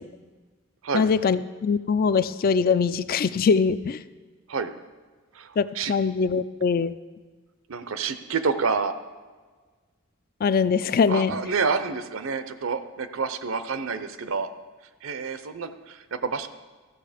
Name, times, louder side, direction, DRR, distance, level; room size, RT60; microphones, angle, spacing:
voice 1, 0.9-4.0 5.6-6.9 10.4-11.3, left 5 dB, 45° left, 15 dB, 0.3 m, -22 dB
voice 2, 5.3-5.9 7.7-8.9 11.1-14.5 15.0-16.5, right 5 dB, 75° right, 11 dB, 0.7 m, -28 dB
14.0 x 6.4 x 5.0 m, 1.4 s
head